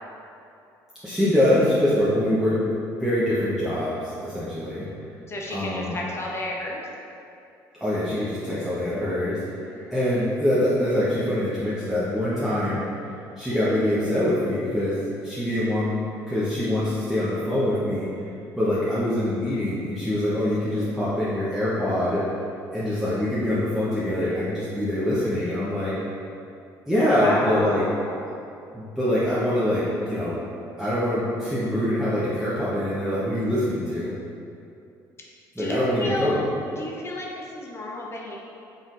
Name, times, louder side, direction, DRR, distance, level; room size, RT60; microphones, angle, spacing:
voice 1, 1.0-4.9 5.5-6.0 7.8-9.4 9.9-12.9 13.4-16.0 16.3-18.1 18.6-22.3 22.7-26.0 26.9-27.9 28.7-30.4 30.8-34.1 35.6-36.5, left 1 dB, 5° right, -10 dB, 0.8 m, -24 dB
voice 2, 4.4-4.8 5.3-6.8 9.7-10.0 27.2-28.3 35.6-36.4 36.8-38.4, left 1 dB, 30° left, -2 dB, 0.7 m, -32 dB
4.1 x 3.8 x 2.5 m, 2.6 s
supercardioid pair, 75°, 9 cm